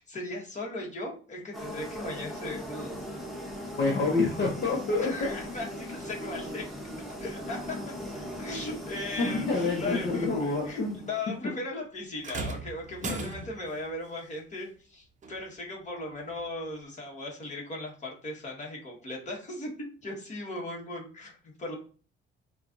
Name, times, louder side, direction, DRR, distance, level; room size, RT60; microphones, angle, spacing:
voice 1, 0.0-3.0 5.0-6.6 7.2-7.8 8.4-10.8 11.0-21.8, left 2 dB, 35° left, -1 dB, 1.4 m, -38 dB
sound 1, 1.5-11.3, equal, ahead, 1.0 m, -39 dB
voice 2, 3.8-5.3 9.2-11.0 13.0-13.4, left 3 dB, 55° left, -2 dB, 0.9 m, -28 dB
sound 2, 12.2-13.8 15.2-15.4 16.3-16.4, right 4 dB, 40° right, 0.6 m, -37 dB
4.3 x 2.4 x 2.6 m, 0.39 s
cardioid pair, 90°, 20 cm